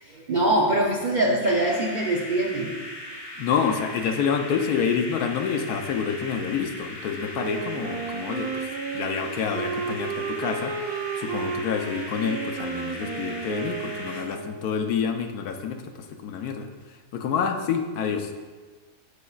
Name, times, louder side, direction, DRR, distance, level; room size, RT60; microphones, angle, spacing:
voice 1, 0.0-2.8, right 1 dB, 60° right, -2 dB, 0.4 m, -23 dB
sound 1, 1.4-14.2, left 1 dB, 30° left, 0.5 m, -39 dB
voice 2, 3.4-8.7 8.9-15.8 16.1-16.7 17.1-18.3, left 6 dB, 75° left, 5 dB, 1.1 m, -28 dB
Wind instrument woodwind instrument, 7.3-15.1, right 5 dB, 80° right, 1.2 m, -33 dB
8.2 x 7.5 x 2.3 m, 1.4 s
omnidirectional pair, 1.7 m